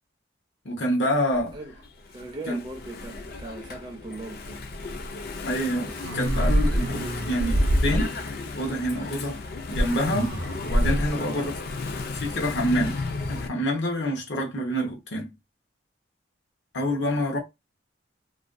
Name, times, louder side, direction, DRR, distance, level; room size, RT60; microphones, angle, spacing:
voice 1, 0.6-1.6 2.5-2.6 5.4-8.2 8.6-10.4 10.6-11.5 12.1-13.0 13.3-15.3 16.7-17.4, equal, 75° left, 0.8 m, -27 dB
Engine / Mechanisms, 1.3-13.5, left 3 dB, 50° left, 0.3 m, -35 dB
voice 2, 2.1-4.6 11.2-11.6, right 2 dB, 25° right, 0.4 m, -39 dB
sound 1, 5.9-8.3 9.7-11.2, equal, 80° right, 0.6 m, -25 dB
2.4 x 2.2 x 2.5 m
head